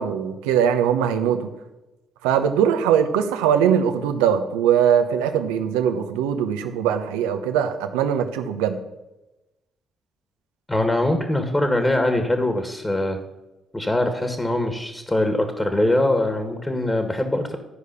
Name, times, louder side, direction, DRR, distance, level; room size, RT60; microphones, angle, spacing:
voice 1, 0.0-1.5 2.2-8.8, right 8 dB, 90° right, 7 dB, 0.9 m, -21 dB
voice 2, 10.7-13.2 13.7-17.6, left 1 dB, 20° left, 6 dB, 1.7 m, -22 dB
13.0 x 4.9 x 6.8 m, 1.0 s
supercardioid pair, 55°, 0 cm